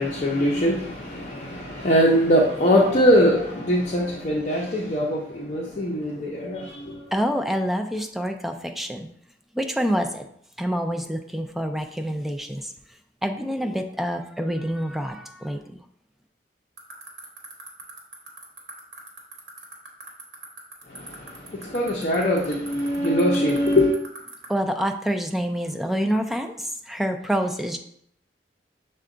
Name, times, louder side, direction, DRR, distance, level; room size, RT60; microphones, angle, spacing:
voice 1, 0.0-7.0 20.9-24.0, equal, 40° left, -4 dB, 0.6 m, -22 dB
voice 2, 7.1-9.1 9.5-10.3 10.6-12.7 13.2-15.8 24.5-27.8, equal, ahead, 4 dB, 0.3 m, -27 dB
sound 1, 16.8-24.4, right 4 dB, 65° right, 1.0 m, -39 dB
5.9 x 2.2 x 3.7 m, 0.68 s
head